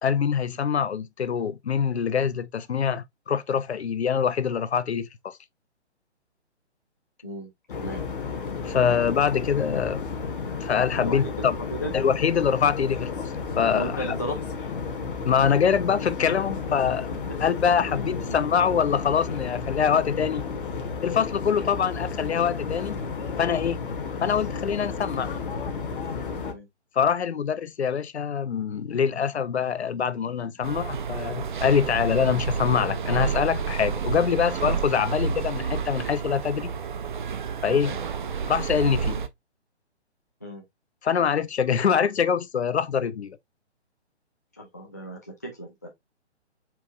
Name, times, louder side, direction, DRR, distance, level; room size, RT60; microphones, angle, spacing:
voice 1, 0.0-5.4 8.7-10.0 10.6-11.6 11.9-14.2 15.2-17.1 17.4-20.4 21.0-23.0 23.4-23.8 24.2-25.3 27.0-36.7 37.6-37.9 38.5-39.2 41.0-43.4, left 7 dB, 70° left, 0.5 m, -24 dB
sound 1, 7.7-26.5, left 5 dB, 50° left, 0.9 m, -32 dB
voice 2, 11.0-11.9 13.7-14.4 17.8-18.4 26.4-26.7 37.8-38.0 40.4-40.6 44.6-45.9, equal, 15° left, 0.3 m, -35 dB
sound 2, 30.6-39.3, right 6 dB, 45° right, 0.5 m, -30 dB
4.5 x 2.5 x 3.4 m
figure-of-eight pair, 130°, 34 cm